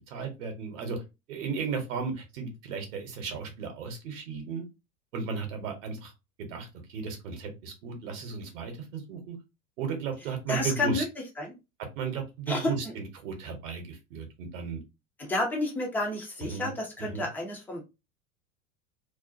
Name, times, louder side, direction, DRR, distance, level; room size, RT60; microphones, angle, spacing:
voice 1, 0.1-1.0 1.3-4.6 5.1-6.1 6.4-9.4 9.8-11.0 12.0-14.8 16.5-16.7 17.0-17.2, right 5 dB, 55° right, 4 dB, 0.8 m, -35 dB
voice 2, 10.5-11.0 11.4-11.5 12.5-12.7 15.2-17.8, left 2 dB, 5° left, 0 dB, 0.3 m, -30 dB
2.4 x 2.1 x 2.5 m, 0.25 s
figure-of-eight pair, 85°, 44 cm